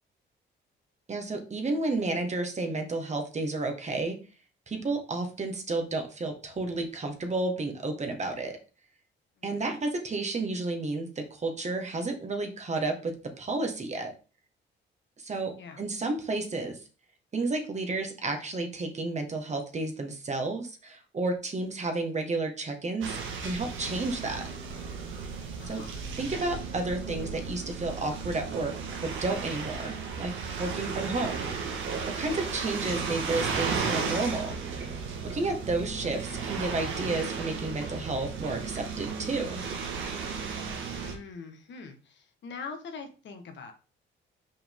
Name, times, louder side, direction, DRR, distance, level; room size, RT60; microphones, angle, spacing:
voice 1, 1.1-4.2 4.7-8.6 9.4-14.1 15.2-16.8 17.3-24.4 25.7-25.8 26.2-28.7 29.0-31.5 32.1-34.6 35.2-39.6, right 2 dB, 35° right, 4 dB, 1.7 m, -31 dB
voice 2, 9.4-9.8 15.6-15.8 25.6-26.0 40.9-43.7, left 5 dB, 65° left, 5 dB, 1.6 m, -43 dB
sound 1, 23.0-41.1, right 5 dB, 85° right, 1.6 m, -34 dB
5.7 x 5.0 x 3.7 m, 0.35 s
cardioid pair, 90°, 20 cm